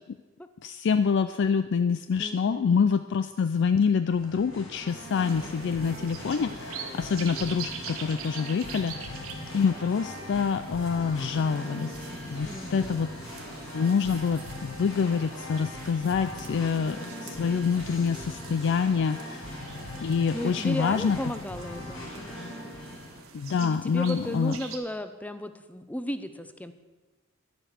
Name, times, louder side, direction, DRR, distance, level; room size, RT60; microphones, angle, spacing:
voice 1, 0.6-9.2 9.5-13.1 13.7-19.6 20.0-21.2 23.3-24.6, left 6 dB, 60° left, 10 dB, 0.4 m, -26 dB
voice 2, 2.2-2.8 12.4-13.0 20.3-22.0 23.6-26.7, left 1 dB, 5° left, 10 dB, 0.6 m, -35 dB
Singing, 4.0-23.2, left 1 dB, 75° left, 3.7 m, -40 dB
sound 1, 4.9-24.8, right 6 dB, 75° right, 1.4 m, -45 dB
11.0 x 7.9 x 6.5 m, 1.2 s
head